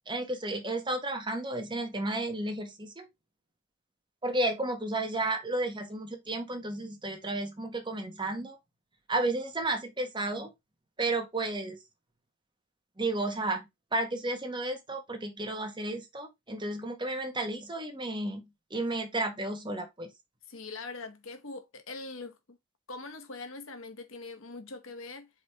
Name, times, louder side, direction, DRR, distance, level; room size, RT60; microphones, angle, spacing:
voice 1, 0.1-3.1 4.2-8.6 9.1-10.5 11.0-11.8 13.0-13.6 13.9-20.1, right 2 dB, 25° right, 1.5 m, -32 dB
voice 2, 20.5-22.6 22.9-25.3, left 3 dB, 80° left, 1.3 m, -42 dB
5.0 x 4.2 x 4.9 m
head